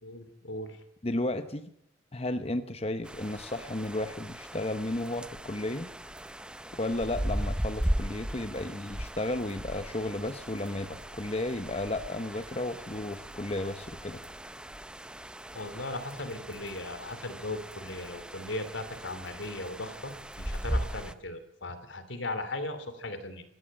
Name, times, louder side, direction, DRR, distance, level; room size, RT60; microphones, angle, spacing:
voice 1, 0.0-0.8 15.5-23.4, left 2 dB, 70° left, 11 dB, 2.9 m, -38 dB
voice 2, 1.0-1.7 2.1-5.9 6.7-14.2, left 1 dB, 30° left, 9 dB, 0.9 m, -33 dB
sound 1, 3.0-21.1, equal, 5° right, 0.8 m, -38 dB
19.0 x 15.5 x 8.8 m, 0.76 s
head